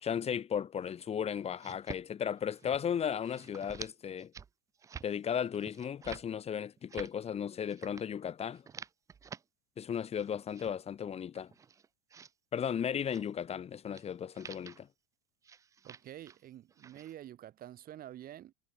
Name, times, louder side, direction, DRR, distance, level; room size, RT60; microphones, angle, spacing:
voice 1, 0.0-4.3 5.0-8.6 9.8-11.5 12.5-14.9, left 8 dB, 20° left, 1.1 m, -35 dB
sound 1, 1.4-2.0 2.4-2.8 3.1-3.9 4.2-4.5 4.8-5.1 5.5-6.2 6.7-7.1 7.7-8.0 8.5-9.4 9.9-10.7 11.3-12.3 13.0-13.3 13.9-14.1 14.3-14.8 15.4-16.4 16.7-17.1, right 6 dB, 10° right, 0.4 m, -49 dB
voice 2, 15.8-18.5, right 12 dB, 25° right, 1.3 m, -48 dB
supercardioid pair, 145°, 33 cm